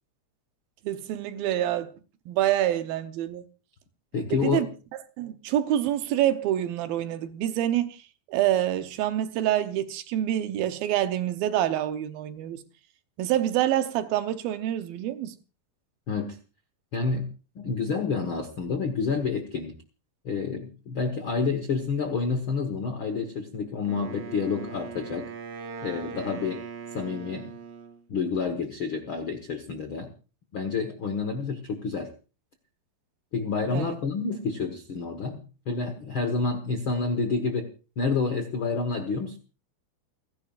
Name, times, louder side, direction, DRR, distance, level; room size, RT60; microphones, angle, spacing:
voice 1, 0.8-1.9 2.3-3.5 4.3-4.7 5.2-8.0 8.3-12.6 13.2-15.4 33.7-34.0, right 12 dB, 75° right, 2.6 m, -26 dB
voice 2, 4.1-4.7 16.1-16.4 16.9-17.3 17.5-19.7 20.2-25.3 25.8-26.6 26.9-27.5 28.1-30.1 30.5-32.1 33.3-37.7 38.0-39.4, left 4 dB, 65° left, 1.3 m, -29 dB
Wind instrument woodwind instrument, 23.9-28.0, right 6 dB, 55° right, 3.0 m, -40 dB
29.5 x 11.0 x 2.5 m
omnidirectional pair, 4.5 m